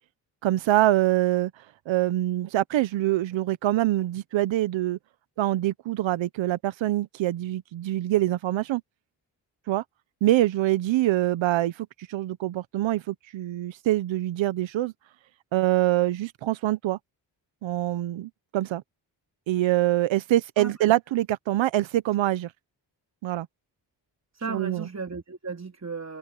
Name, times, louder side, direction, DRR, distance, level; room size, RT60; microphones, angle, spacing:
voice 1, 0.4-1.5 1.9-5.0 5.4-8.8 9.7-9.8 10.2-14.9 15.5-17.0 17.6-18.8 19.5-22.5 23.2-23.5 24.5-24.9, right 15 dB, 80° right, 1.0 m, -25 dB
voice 2, 20.6-20.9 24.3-26.2, right 4 dB, 35° right, 3.9 m, -35 dB
supercardioid pair, 50°, 45 cm